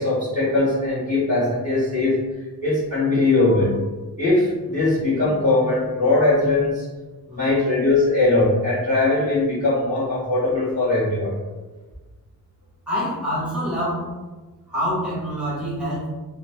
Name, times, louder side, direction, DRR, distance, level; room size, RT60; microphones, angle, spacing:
voice 1, 0.0-2.2 2.6-3.8 4.2-6.8 7.3-11.3, left 2 dB, 20° left, -12 dB, 1.4 m, -20 dB
voice 2, 12.9-14.0 14.7-16.1, equal, ahead, -8 dB, 1.1 m, -26 dB
3.0 x 2.1 x 3.0 m, 1.3 s
wide cardioid pair, 155°, 38 cm